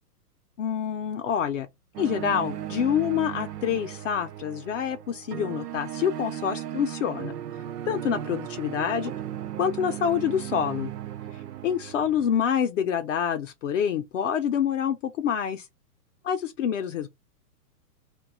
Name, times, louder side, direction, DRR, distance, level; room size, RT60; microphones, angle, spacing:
voice 1, 0.6-1.7 2.0-7.3 7.9-9.1 9.6-10.9 11.6-15.7 16.2-17.1, left 8 dB, 55° left, 0.5 m, -27 dB
sound 1, 1.9-12.4, right 11 dB, 80° right, 0.5 m, -36 dB
2.3 x 2.2 x 4.0 m
hypercardioid pair, 135°, 46 cm